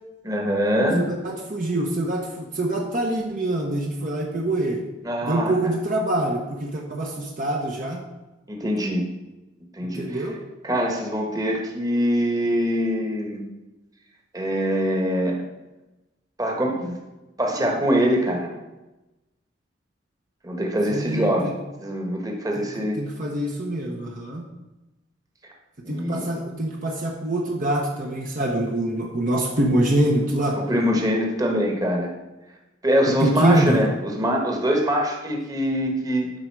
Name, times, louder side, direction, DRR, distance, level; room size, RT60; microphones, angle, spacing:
voice 1, 0.2-1.1 5.0-5.5 8.5-9.0 9.7-10.3 10.6-13.4 14.3-15.4 16.4-17.0 17.4-18.5 20.4-21.5 21.8-23.0 25.8-26.2 30.7-32.1 32.8-36.3, equal, 20° right, 1 dB, 1.4 m, -23 dB
voice 2, 1.0-4.8 5.2-8.0 9.8-10.4 20.9-21.5 22.6-24.4 25.9-30.6 33.1-33.8, right 1 dB, 45° right, 0 dB, 1.0 m, -25 dB
12.0 x 5.0 x 4.7 m, 1.0 s
head